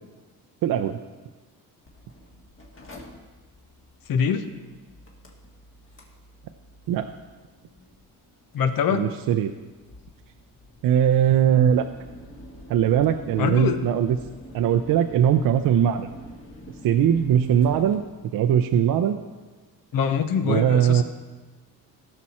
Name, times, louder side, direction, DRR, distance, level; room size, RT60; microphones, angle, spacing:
voice 1, 0.6-1.0 6.9-7.1 8.9-9.5 10.8-11.9 12.7-14.2 14.5-16.1 16.8-18.0 18.3-19.2 20.5-21.0, right 9 dB, 65° right, 7 dB, 0.6 m, -20 dB
Mechanical fan, 1.9-17.9, left 1 dB, 35° left, 1.8 m, -47 dB
voice 2, 4.1-4.4 8.5-9.1 13.4-13.8 19.9-21.0, left 7 dB, 65° left, 9 dB, 0.9 m, -23 dB
15.5 x 6.1 x 4.3 m, 1.3 s
cardioid pair, 115°, 37 cm